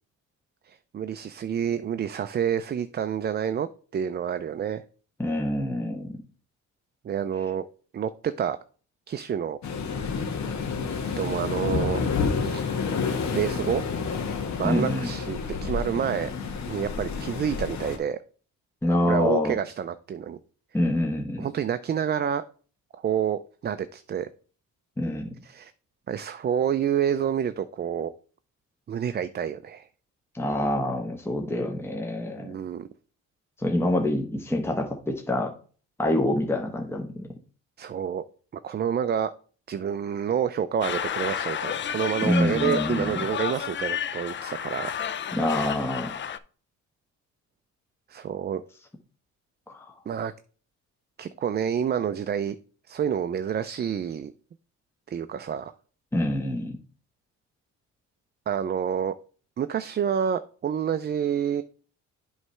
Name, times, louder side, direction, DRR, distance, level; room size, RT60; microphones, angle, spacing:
voice 1, 0.7-3.7 3.9-4.8 7.0-7.7 7.9-8.6 9.1-9.6 11.2-12.0 12.4-12.7 13.3-13.8 14.6-16.3 16.7-18.2 19.1-20.4 21.4-22.4 22.9-24.3 25.4-25.7 26.1-28.1 28.9-29.9 32.4-32.9 37.8-38.2 38.6-39.3 39.7-44.9 48.1-48.6 50.1-50.3 51.2-52.6 52.9-54.3 55.1-55.7 58.5-59.1 59.6-61.6, right 8 dB, 35° right, 11 dB, 0.4 m, -28 dB
voice 2, 5.2-6.1 14.6-15.1 18.8-19.5 20.7-21.5 25.0-25.3 30.3-32.6 33.6-35.5 36.0-37.3 42.2-43.2 45.3-46.2 49.7-49.9 56.1-56.8, left 1 dB, 10° left, 1 dB, 1.1 m, -26 dB
Waves surf, 9.6-18.0, left 5 dB, 65° left, 1.2 m, -29 dB
sound 1, 40.8-46.4, left 9 dB, 40° left, 0.5 m, -31 dB
7.8 x 3.2 x 5.6 m, 0.40 s
cardioid pair, 90°, 30 cm